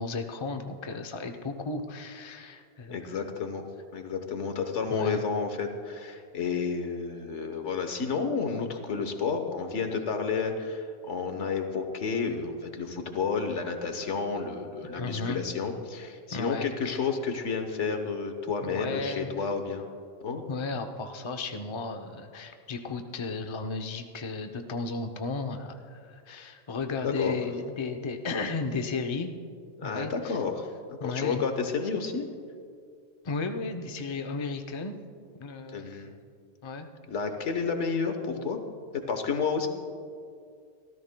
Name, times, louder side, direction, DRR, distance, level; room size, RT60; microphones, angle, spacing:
voice 1, 0.0-3.0 4.9-5.2 14.9-15.4 16.3-17.0 18.6-19.3 20.5-29.3 29.8-30.4 31.0-31.4 33.2-35.0 35.4-36.0 36.6-36.9, left 3 dB, 30° left, 6 dB, 0.6 m, -34 dB
voice 2, 2.9-3.6 3.9-19.8 20.2-20.4 27.0-27.4 29.8-30.7 31.0-32.3 35.7-36.1 37.1-38.6 38.9-39.7, left 5 dB, 85° left, 6 dB, 1.4 m, -31 dB
25.5 x 14.0 x 2.2 m, 2.3 s
omnidirectional pair, 1.2 m